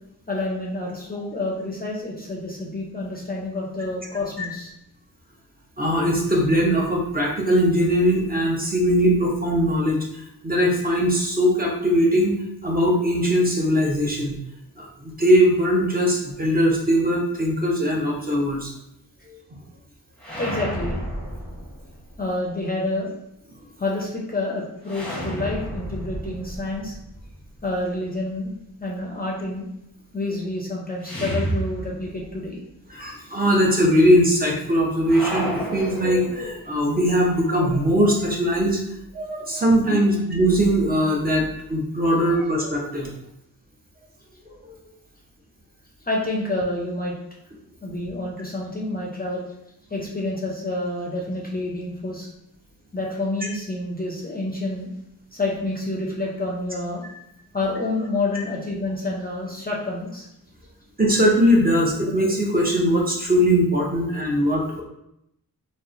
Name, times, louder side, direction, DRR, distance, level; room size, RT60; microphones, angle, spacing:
voice 1, 0.3-4.7 20.4-21.0 22.2-23.1 23.8-27.0 27.6-28.5 28.8-29.6 30.1-32.6 46.1-47.2 47.8-49.5 49.9-52.3 52.9-54.9 55.3-57.0 57.5-60.3, left 2 dB, 25° left, -2 dB, 0.5 m, -28 dB
voice 2, 5.8-10.0 10.4-12.3 12.6-14.4 14.8-18.7 32.9-38.8 39.1-43.1 44.6-44.7 58.3-58.4 61.0-64.8, equal, 25° right, -2 dB, 0.7 m, -20 dB
sound 1, 20.2-22.2 24.8-27.8 31.0-32.4 32.7-32.8 35.0-36.8, right 1 dB, 5° left, 0.9 m, -31 dB
3.0 x 2.1 x 3.6 m, 0.81 s
wide cardioid pair, 110°, 36 cm